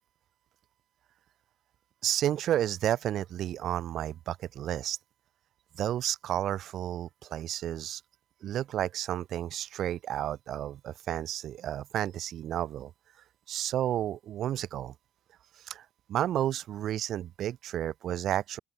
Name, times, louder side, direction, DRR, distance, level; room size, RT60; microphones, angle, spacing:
voice 1, 2.0-5.0 5.8-8.0 8.4-12.9 13.5-14.9 15.6-18.6, right 11 dB, 75° right, 0.7 m, -31 dB
open air
cardioid pair, 90°, 0 cm